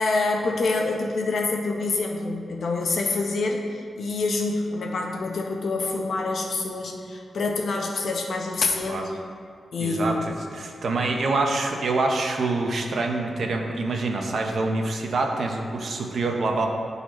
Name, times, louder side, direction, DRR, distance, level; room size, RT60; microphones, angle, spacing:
voice 1, 0.0-9.0 9.7-10.3, left 3 dB, 65° left, 1 dB, 0.8 m, -26 dB
voice 2, 9.8-16.7, right 3 dB, 60° right, 2 dB, 0.8 m, -26 dB
11.5 x 4.0 x 3.1 m, 2.2 s
wide cardioid pair, 125°, 0 cm